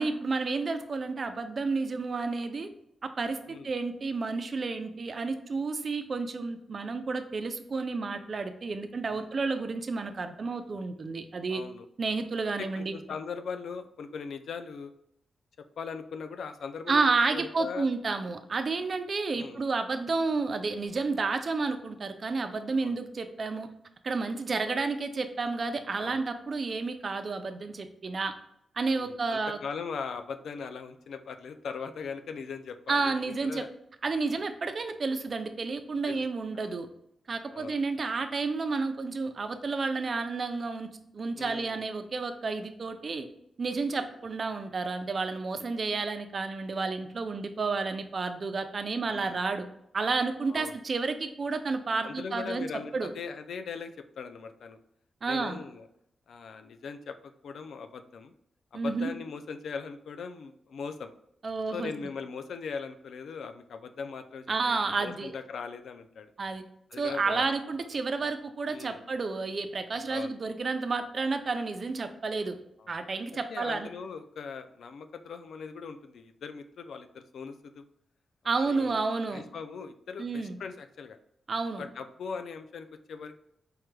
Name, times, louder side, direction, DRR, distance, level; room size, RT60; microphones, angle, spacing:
voice 1, 0.0-2.7 3.0-11.6 12.0-12.9 16.9-23.7 24.0-28.3 28.8-29.6 32.9-33.6 34.0-36.9 37.3-40.9 41.1-43.3 43.6-49.6 49.9-52.7 52.9-53.1 55.2-55.6 58.7-59.1 61.4-61.9 64.5-65.3 66.4-66.6 67.0-72.6 72.9-73.9 78.4-79.4 80.2-80.6 81.5-81.8, right 4 dB, 50° right, 8 dB, 0.4 m, -31 dB
voice 2, 11.5-11.9 12.6-14.9 15.6-17.0 17.3-17.9 19.3-19.6 22.8-23.0 24.7-24.8 26.0-26.2 28.9-33.7 36.1-36.2 36.5-36.8 37.5-37.8 41.4-41.8 44.0-44.1 49.1-49.4 50.5-50.8 52.0-54.8 55.3-55.9 56.3-58.3 58.7-61.1 61.7-66.3 66.9-67.5 68.7-69.0 70.0-70.3 72.8-73.0 73.5-77.9 78.6-79.0 79.3-81.2 81.8-83.3, left 5 dB, 80° left, 9 dB, 0.3 m, -40 dB
4.6 x 2.2 x 3.1 m, 0.73 s
cardioid pair, 95°, 0 cm